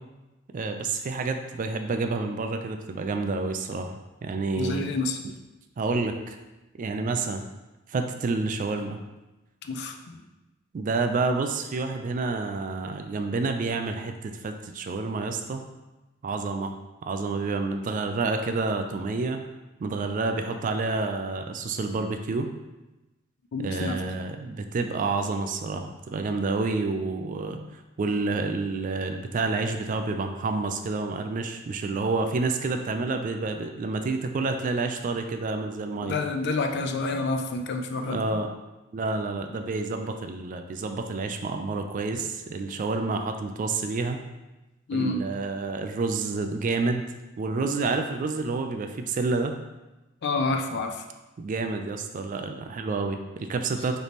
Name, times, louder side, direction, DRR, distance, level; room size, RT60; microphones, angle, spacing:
voice 1, 0.5-4.8 5.8-6.4 6.7-7.5 7.9-9.0 10.7-15.6 16.2-16.7 17.0-19.4 19.8-22.5 23.6-27.6 28.0-36.2 38.0-38.5 38.9-44.2 44.9-49.5 51.4-54.0, right 3 dB, 40° right, 6 dB, 0.3 m, -29 dB
voice 2, 4.6-5.2 9.6-10.3 23.5-24.1 36.0-38.4 44.9-45.3 50.2-51.0, left 3 dB, 55° left, 5 dB, 0.4 m, -29 dB
3.4 x 3.0 x 4.0 m, 1.1 s
head